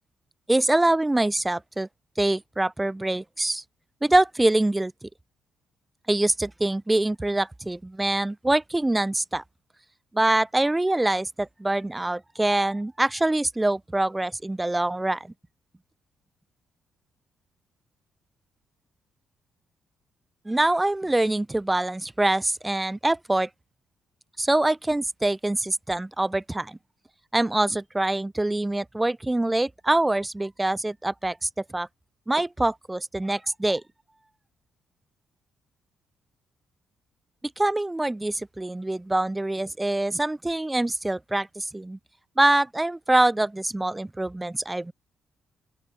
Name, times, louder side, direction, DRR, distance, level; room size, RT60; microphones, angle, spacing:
voice 1, 0.5-1.9 2.2-3.6 4.0-5.1 6.1-9.4 10.1-15.3 20.5-23.5 24.4-26.8 27.3-31.9 32.3-33.8 37.6-42.0 42.4-44.9, right 2 dB, 15° right, 5.7 m, -24 dB
open air
cardioid pair, 85°, 0 cm